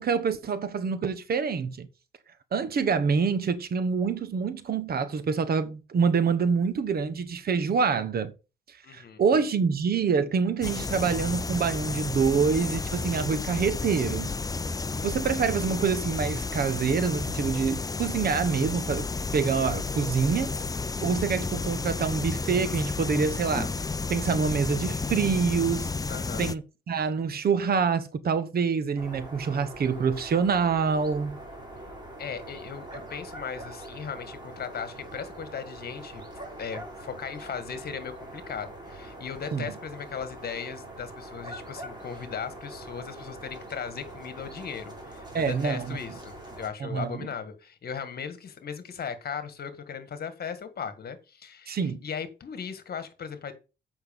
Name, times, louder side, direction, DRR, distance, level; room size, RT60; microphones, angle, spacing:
voice 1, 0.0-1.9 2.5-8.3 8.7-14.3 15.0-19.1 19.3-20.5 21.0-23.7 24.1-25.9 26.4-31.4 39.5-39.7 45.3-46.0 46.8-47.3 51.7-52.0, right 5 dB, 50° right, 1.2 m, -26 dB
voice 2, 8.8-9.2 26.1-26.5 32.2-36.2 36.6-53.5, left 7 dB, 50° left, 1.8 m, -37 dB
sound 1, 10.6-26.6, left 3 dB, 20° left, 0.6 m, -32 dB
sound 2, 29.0-46.7, right 1 dB, 20° right, 3.9 m, -43 dB
8.1 x 5.8 x 5.3 m
cardioid pair, 90°, 20 cm